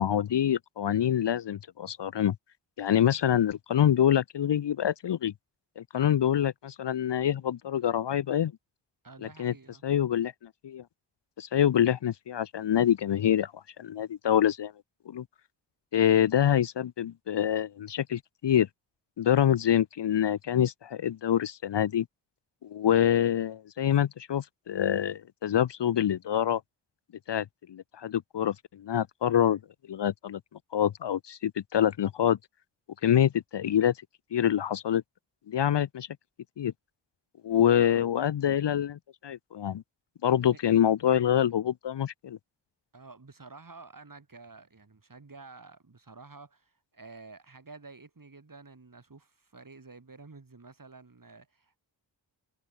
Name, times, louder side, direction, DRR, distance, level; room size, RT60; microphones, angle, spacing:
voice 1, 0.0-2.4 2.8-5.3 5.8-8.5 9.2-9.5 9.8-10.3 10.6-10.8 11.4-14.7 15.1-15.2 15.9-18.7 19.2-22.1 22.6-26.6 27.3-29.6 29.9-30.4 30.7-32.4 33.0-33.9 34.3-35.0 35.5-36.1 36.6-36.7 37.4-39.8 40.2-42.4, left 10 dB, 55° left, 0.8 m, -26 dB
voice 2, 9.0-9.8 37.7-38.1 40.4-40.6 42.9-51.8, right 3 dB, 40° right, 7.8 m, -50 dB
supercardioid pair, 40°, 49 cm